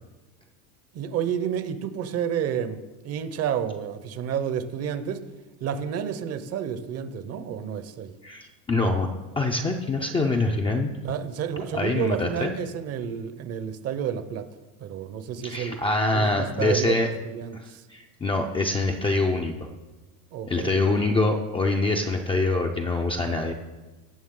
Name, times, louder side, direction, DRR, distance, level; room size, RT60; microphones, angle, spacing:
voice 1, 0.9-5.2 5.6-8.1 11.0-14.5 14.8-15.8 16.1-17.8 20.3-20.8, right 8 dB, 35° right, 12 dB, 0.7 m, -30 dB
voice 2, 8.2-9.1 9.4-10.9 11.7-12.5 15.4-17.1 17.5-19.5 20.5-23.5, left 2 dB, 10° left, 2 dB, 0.4 m, -25 dB
16.0 x 7.0 x 3.7 m, 1.2 s
supercardioid pair, 130°, 46 cm